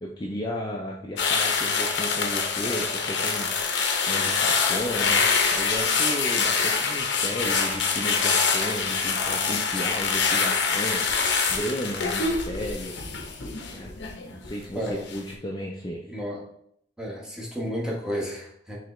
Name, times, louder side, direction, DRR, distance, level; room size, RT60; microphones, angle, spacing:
voice 1, 0.0-3.5 4.1-11.0 11.5-12.9 13.7-13.9 14.3-16.1, equal, 25° left, -2 dB, 0.4 m, -34 dB
sound 1, 1.2-14.5 14.9-15.2, left 5 dB, 90° left, 0.7 m, -25 dB
voice 2, 16.1-16.4 17.0-18.8, equal, 5° right, -4 dB, 1.0 m, -32 dB
4.8 x 3.3 x 3.0 m, 0.71 s
head